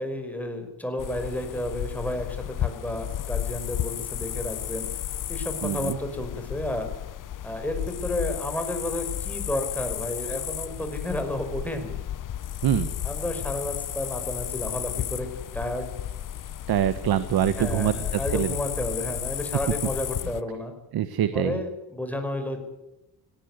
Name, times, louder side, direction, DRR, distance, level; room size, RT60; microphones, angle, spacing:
voice 1, 0.0-4.9 5.3-6.9 7.4-11.9 13.0-15.3 15.5-15.9 17.6-20.7 21.3-22.6, left 1 dB, 5° left, 5 dB, 5.3 m, -31 dB
sound 1, 1.0-20.4, left 11 dB, 50° left, 1.1 m, -33 dB
voice 2, 5.6-6.0 12.6-12.9 16.7-18.6 20.9-21.6, right 10 dB, 60° right, 12 dB, 1.4 m, -25 dB
18.5 x 17.5 x 9.6 m, 0.92 s
cardioid pair, 110°, 41 cm